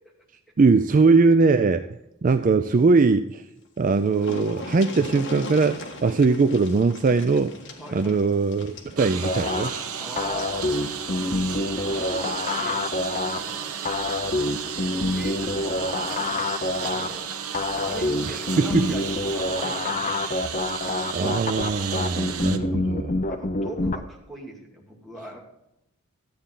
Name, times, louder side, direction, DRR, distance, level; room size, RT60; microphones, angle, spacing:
voice 1, 0.6-1.8 2.2-3.4 3.8-7.5 7.9-9.8 18.6-18.9 21.1-23.2, right 4 dB, 35° right, 10 dB, 0.4 m, -20 dB
sound 1, 3.5-3.6 3.8-10.6 11.9-12.0 12.4-12.5, left 2 dB, 55° left, 1.6 m, -39 dB
voice 2, 7.8-8.3 9.9-10.6 11.5-13.0 13.3-14.0 14.6-17.3 17.8-20.2 22.4-22.6 23.2-25.4, equal, ahead, -3 dB, 2.4 m, -41 dB
Engine, 9.0-22.6, right 8 dB, 85° right, 0.9 m, -33 dB
sound 2, 9.2-24.0, left 2 dB, 35° left, 0.6 m, -27 dB
13.0 x 8.6 x 3.8 m, 0.86 s
head